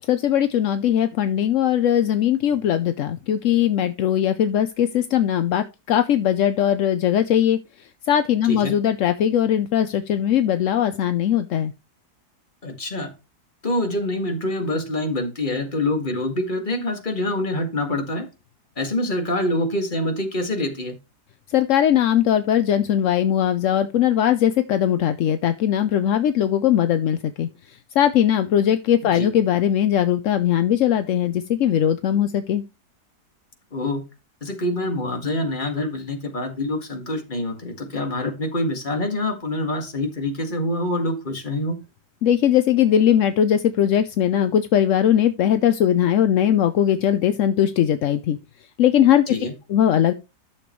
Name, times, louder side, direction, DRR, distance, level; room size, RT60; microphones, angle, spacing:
voice 1, 0.1-7.6 8.1-11.7 21.5-27.5 28.0-32.6 42.2-48.4 48.8-49.3 49.7-50.1, left 10 dB, 65° left, 0.8 m, -20 dB
voice 2, 12.6-13.1 13.6-18.3 18.8-21.0 29.0-29.3 33.7-34.0 34.4-41.8 49.3-49.5, left 1 dB, 30° left, 2.1 m, -26 dB
12.0 x 6.9 x 3.1 m
omnidirectional pair, 1.8 m